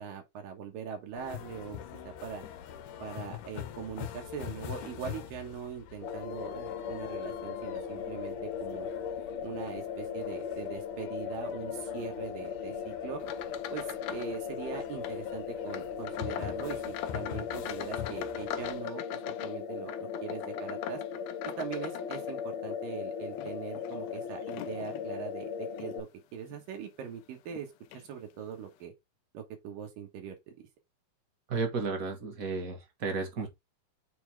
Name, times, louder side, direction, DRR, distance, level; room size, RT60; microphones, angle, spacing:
voice 1, 0.0-1.8 2.0-2.5 3.0-8.9 9.4-13.2 13.7-21.0 21.4-26.1 26.3-27.7 27.9-28.9 29.3-30.5, right 7 dB, 75° right, 3.1 m, -41 dB
sound 1, 1.1-18.8, left 10 dB, 70° left, 2.3 m, -45 dB
sound 2, 6.0-26.0, left 7 dB, 40° left, 2.2 m, -38 dB
sound 3, 13.2-14.4 14.6-15.2 15.7-22.8 23.3-25.1 25.7-26.0 26.5-26.6 27.5-27.6 27.9-28.1, left 11 dB, 90° left, 1.6 m, -42 dB
voice 2, 31.5-33.5, right 4 dB, 50° right, 1.0 m, -33 dB
7.1 x 4.5 x 3.5 m
omnidirectional pair, 4.0 m